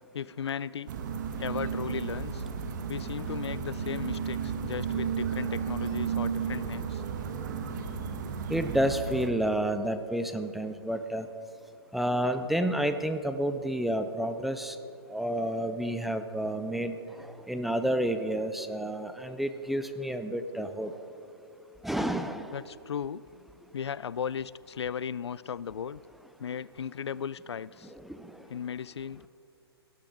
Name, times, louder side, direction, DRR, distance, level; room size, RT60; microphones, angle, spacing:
voice 1, 0.1-0.9 1.4-2.4 2.9-7.0 22.5-23.2 23.7-26.0 26.4-27.9 28.5-29.2, left 7 dB, 85° left, 20 dB, 0.4 m, -36 dB
sound 1, 0.9-9.3, right 7 dB, 45° right, 1.2 m, -33 dB
voice 2, 8.5-11.3 11.9-14.8 15.1-20.9 21.8-22.6 27.9-28.3, right 1 dB, ahead, 8 dB, 0.3 m, -30 dB
18.0 x 12.0 x 3.8 m, 2.7 s
hypercardioid pair, 140°, 14 cm